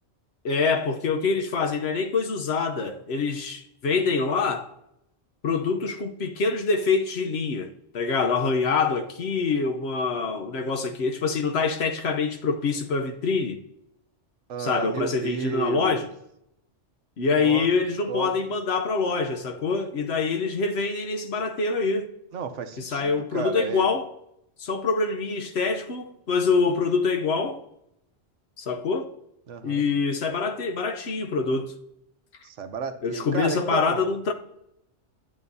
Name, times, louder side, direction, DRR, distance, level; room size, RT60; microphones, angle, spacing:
voice 1, 0.4-4.7 5.4-13.6 14.6-16.1 17.2-22.1 22.8-24.1 24.6-27.6 28.6-29.1 29.6-31.7 33.0-34.3, left 4 dB, 65° left, 1.0 m, -25 dB
voice 2, 14.5-16.0 17.4-17.7 18.1-18.3 22.3-23.9 29.5-29.9 32.4-34.1, right 7 dB, 90° right, 1.1 m, -32 dB
11.0 x 8.5 x 2.7 m
omnidirectional pair, 1.2 m